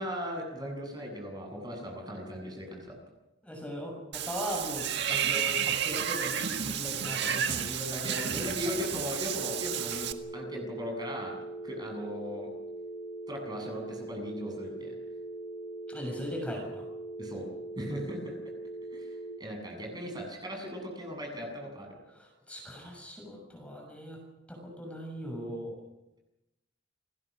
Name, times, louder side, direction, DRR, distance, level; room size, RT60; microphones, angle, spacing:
voice 1, 0.0-3.0 7.2-7.3 7.6-10.1 10.3-11.4 11.6-12.5 13.3-15.0 17.2-17.5 17.8-18.3 18.9-19.1 19.4-21.9, equal, 20° right, 2 dB, 7.4 m, -38 dB
voice 2, 3.4-7.7 8.1-8.4 8.6-8.8 15.9-16.8 22.1-24.2 24.5-25.8, equal, 5° left, 1 dB, 6.6 m, -39 dB
Water / Bathtub (filling or washing), 4.1-10.1, right 8 dB, 60° right, 1.7 m, -31 dB
sound 1, 9.3-19.3, right 2 dB, 65° left, 4.4 m, -41 dB
29.0 x 21.0 x 6.4 m, 0.94 s
head